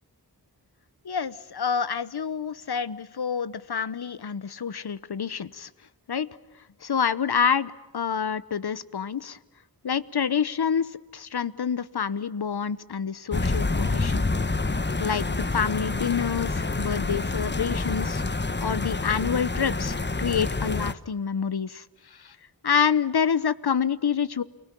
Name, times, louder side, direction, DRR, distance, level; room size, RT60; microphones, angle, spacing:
voice 1, 1.0-5.7 6.1-6.3 6.8-9.4 9.8-14.2 15.0-18.2 18.6-21.8 22.2-22.4 22.6-24.4, left 7 dB, 70° left, 17 dB, 1.0 m, -27 dB
sound 1, 13.3-20.9, left 3 dB, 25° left, 1.1 m, -27 dB
29.0 x 20.0 x 10.0 m, 0.97 s
cardioid pair, 40°, 40 cm